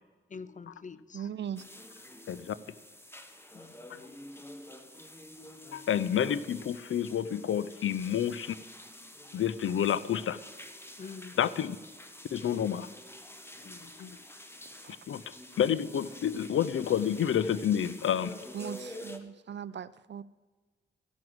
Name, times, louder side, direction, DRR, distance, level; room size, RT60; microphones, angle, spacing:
voice 1, 0.3-1.2 3.5-3.7 5.4-6.0 11.0-11.4 13.6-14.2, left 5 dB, 40° left, 0.6 m, -47 dB
voice 2, 1.1-1.6 14.8-15.0 18.5-20.2, right 8 dB, 60° right, 0.5 m, -39 dB
sound 1, 1.6-19.2, left 1 dB, 10° left, 1.1 m, -48 dB
voice 3, 5.7-8.6 9.3-10.4 11.4-11.8 12.3-12.9 14.0-14.2 15.1-15.2 15.6-18.4, left 9 dB, 80° left, 0.5 m, -29 dB
14.0 x 6.0 x 7.8 m
cardioid pair, 55°, 21 cm